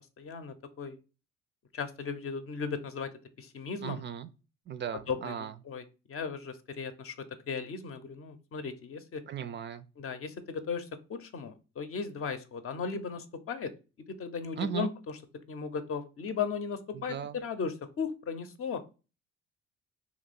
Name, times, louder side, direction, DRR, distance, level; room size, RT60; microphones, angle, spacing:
voice 1, 0.2-1.0 1.7-3.1 3.4-4.0 5.1-5.8 6.1-7.2 7.4-9.2 10.0-13.7 14.2-14.9 15.5-18.8, left 5 dB, 40° left, 0.7 m, -36 dB
voice 2, 3.8-4.3 4.7-5.5 9.3-9.9 14.6-14.9 16.9-17.4, right 8 dB, 35° right, 0.4 m, -36 dB
3.0 x 2.9 x 4.1 m
hypercardioid pair, 50°, 34 cm